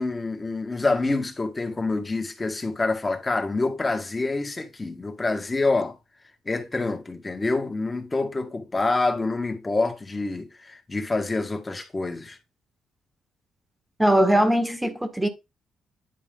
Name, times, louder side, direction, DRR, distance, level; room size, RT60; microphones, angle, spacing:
voice 1, 0.0-6.0 6.5-12.4, left 3 dB, 20° left, 1.7 m, -27 dB
voice 2, 14.0-15.3, right 1 dB, 10° right, 1.5 m, -20 dB
10.5 x 4.2 x 3.8 m
cardioid pair, 90°, 0 cm